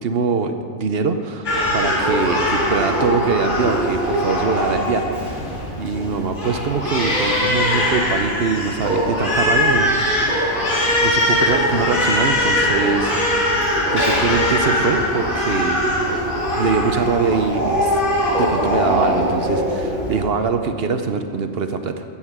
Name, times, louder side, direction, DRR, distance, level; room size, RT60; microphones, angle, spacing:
voice 1, 0.0-1.5 1.7-5.5 5.8-10.0 11.0-13.5 13.9-16.0 16.5-18.0 18.4-22.0, right 5 dB, 60° right, 8 dB, 0.9 m, -23 dB
Crying sobbing, 1.4-20.2, left 1 dB, 70° left, 2.8 m, -21 dB
14.5 x 7.5 x 6.0 m, 2.3 s
omnidirectional pair, 1.3 m